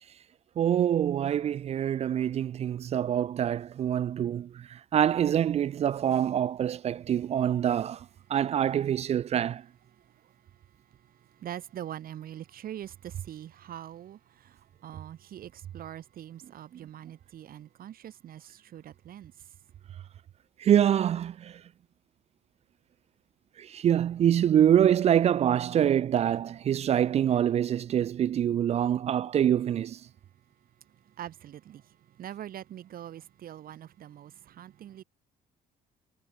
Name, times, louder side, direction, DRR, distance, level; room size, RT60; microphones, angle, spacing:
voice 1, 0.6-9.6 20.6-21.6 23.6-30.0, right 10 dB, 40° right, 0.4 m, -25 dB
voice 2, 9.3-20.1 30.1-35.0, right 11 dB, 60° right, 3.9 m, -44 dB
cardioid pair, 110°, 17 cm